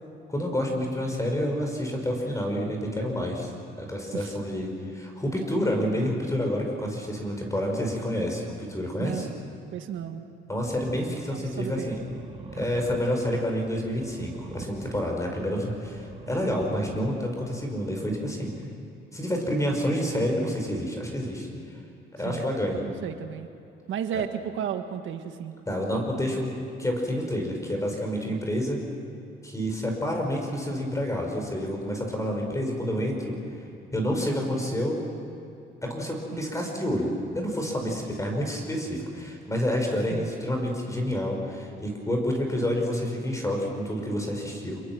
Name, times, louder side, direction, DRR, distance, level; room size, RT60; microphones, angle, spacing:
voice 1, 0.3-3.5 3.8-9.3 10.5-12.0 12.5-18.5 19.1-21.5 22.1-22.8 24.1-24.2 25.7-28.8 29.4-33.4 33.9-35.0 35.8-44.8, equal, 15° left, 1 dB, 5.5 m, -28 dB
voice 2, 9.7-10.2 11.0-11.9 22.2-22.5 22.8-23.5 23.9-25.5 28.3-28.4 40.1-40.3, right 9 dB, 80° right, 7 dB, 1.7 m, -34 dB
sound 1, 10.7-18.6, right 4 dB, 30° right, 2.1 m, -45 dB
27.5 x 22.5 x 6.2 m, 2.7 s
cardioid pair, 90°, 20 cm